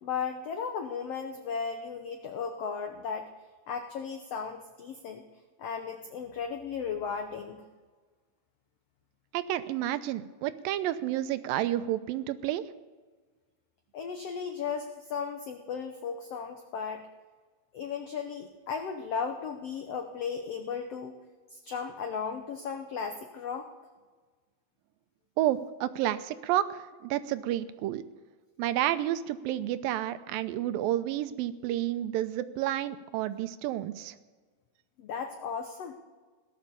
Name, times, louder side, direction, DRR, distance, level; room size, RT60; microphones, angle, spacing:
voice 1, 0.0-3.3 3.7-5.2 5.6-7.6 13.9-17.1 17.7-21.2 21.5-23.7 35.0-35.9, left 6 dB, 80° left, 6 dB, 1.4 m, -35 dB
voice 2, 9.3-12.6 25.4-28.0 28.6-34.2, right 13 dB, 80° right, 12 dB, 2.4 m, -30 dB
18.0 x 11.5 x 6.9 m, 1.4 s
omnidirectional pair, 4.1 m